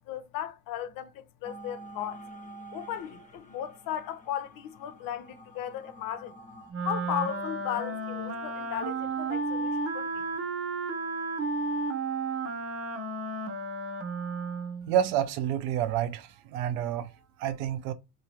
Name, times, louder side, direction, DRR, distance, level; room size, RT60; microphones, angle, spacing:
voice 1, 0.1-2.2 2.7-6.4 6.8-10.3, left 10 dB, 50° left, 0.7 m, -36 dB
sound 1, 1.4-6.7, right 2 dB, 15° left, 0.9 m, -48 dB
Wind instrument woodwind instrument, 6.7-14.9, right 3 dB, 35° right, 0.9 m, -33 dB
voice 2, 14.9-17.9, right 10 dB, 70° right, 0.6 m, -29 dB
2.9 x 2.7 x 4.4 m
hypercardioid pair, 70°, 42 cm